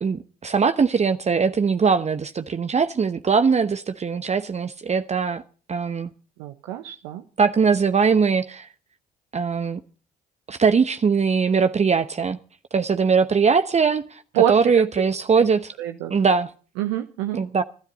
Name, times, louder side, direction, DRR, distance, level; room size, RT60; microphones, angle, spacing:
voice 1, 0.0-5.4 5.7-6.1 7.4-8.7 9.3-9.8 10.5-12.4 12.7-15.7 16.1-16.5 17.3-17.6, right 5 dB, 35° right, 1.0 m, -21 dB
voice 2, 6.4-7.2 14.3-14.6 15.8-16.1 16.8-17.4, right 11 dB, 75° right, 1.1 m, -25 dB
24.0 x 13.0 x 4.0 m
hypercardioid pair, 45°, 21 cm